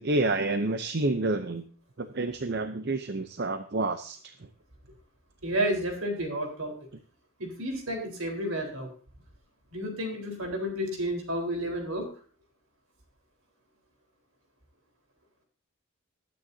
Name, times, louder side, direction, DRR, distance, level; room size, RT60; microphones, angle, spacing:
voice 1, 0.0-1.6 2.0-4.3, right 2 dB, 45° right, 9 dB, 0.7 m, -29 dB
voice 2, 5.4-6.7 7.4-8.9 9.7-12.1, equal, 70° right, 2 dB, 4.2 m, -31 dB
20.5 x 9.4 x 2.8 m, 0.42 s
head